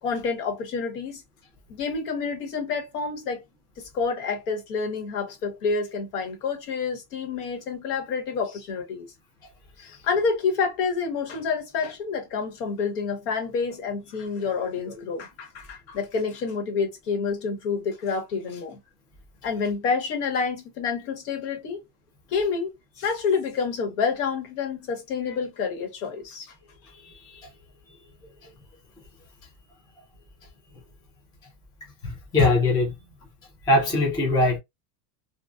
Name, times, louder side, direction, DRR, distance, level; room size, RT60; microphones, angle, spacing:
voice 1, 0.0-1.2 1.7-3.4 3.8-9.1 9.8-18.8 19.4-21.8 22.3-26.5, left 5 dB, 70° left, 1.2 m, -28 dB
voice 2, 26.9-27.4 32.0-32.9 33.7-34.6, left 2 dB, 10° left, 0.4 m, -22 dB
2.3 x 2.3 x 2.4 m
supercardioid pair, 160°, 49 cm